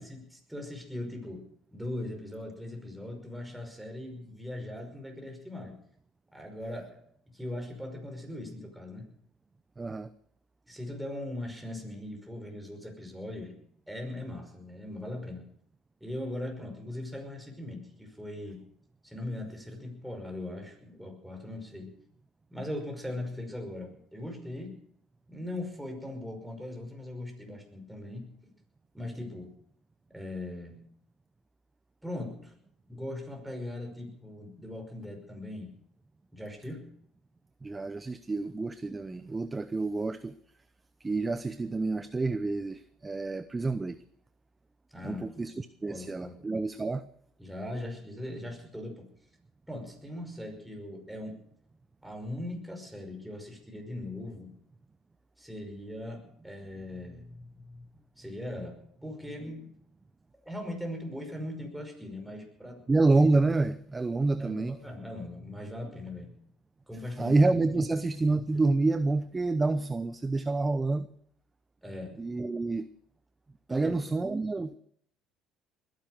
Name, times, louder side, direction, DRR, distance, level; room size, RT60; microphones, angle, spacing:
voice 1, 0.0-5.8 6.3-7.0 7.3-9.1 10.7-13.6 13.9-15.5 16.0-18.6 19.0-21.9 22.5-24.8 25.3-28.5 28.9-29.6 30.1-30.9 32.0-32.6 32.9-35.7 36.3-36.9 44.9-45.3 45.9-46.4 47.4-49.1 49.7-51.4 52.0-54.5 55.4-59.7 60.5-62.8 64.4-66.4 66.9-67.4 67.7-67.9 71.8-72.2 73.7-73.9, left 1 dB, 5° right, 3 dB, 5.5 m, -40 dB
voice 2, 9.8-10.1 37.6-40.3 41.0-44.0 45.0-47.1 62.9-64.8 67.2-71.1 72.2-72.9 73.7-74.8, right 3 dB, 20° right, 13 dB, 0.8 m, -28 dB
21.0 x 10.5 x 6.5 m, 0.64 s
supercardioid pair, 95°, 0 cm